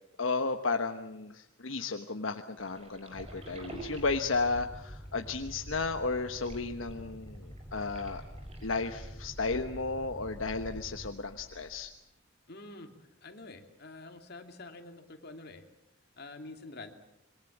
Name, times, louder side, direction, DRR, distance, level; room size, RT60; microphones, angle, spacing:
voice 1, 0.2-8.2 8.6-11.9, left 3 dB, 80° left, 6 dB, 1.2 m, -33 dB
sound 1, 2.6-11.9, right 1 dB, 30° right, 5.3 m, -51 dB
Boat Water vehicle, 3.1-11.1, equal, 5° right, 2.1 m, -46 dB
voice 2, 12.5-12.9 13.2-15.7 16.2-16.9, left 2 dB, 55° left, 5 dB, 2.7 m, -47 dB
26.5 x 23.0 x 7.4 m, 0.81 s
head